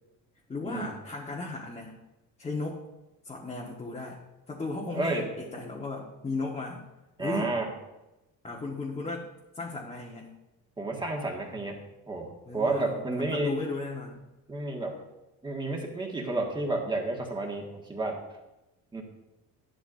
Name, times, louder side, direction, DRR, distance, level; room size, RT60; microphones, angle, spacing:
voice 1, 0.5-1.9 2.4-2.8 3.2-4.2 4.5-6.8 7.2-7.5 8.4-9.2 9.5-10.3 12.5-14.2, left 3 dB, 15° left, -3 dB, 1.3 m, -35 dB
voice 2, 4.9-5.3 7.2-7.7 10.8-13.6 14.5-15.0 15.4-18.2 18.9-19.0, right 2 dB, 15° right, 0 dB, 1.7 m, -31 dB
12.5 x 11.5 x 2.6 m, 0.98 s
cardioid pair, 170°, 35 cm